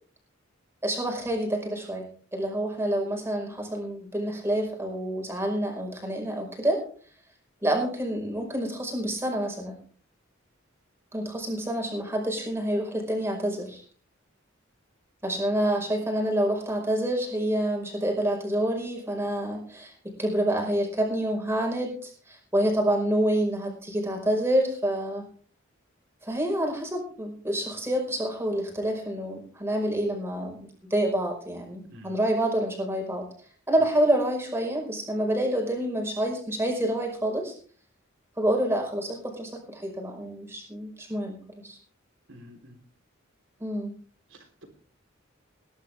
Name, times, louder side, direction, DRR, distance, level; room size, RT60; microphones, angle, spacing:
voice 1, 0.8-6.8 7.6-9.8 11.1-13.8 15.2-25.3 26.2-33.3 33.7-37.5 38.4-41.8 43.6-43.9, right 1 dB, 10° right, 2 dB, 5.0 m, -28 dB
voice 2, 42.3-42.8 44.3-44.6, equal, 65° right, 5 dB, 3.7 m, -49 dB
20.5 x 11.0 x 3.5 m, 0.43 s
head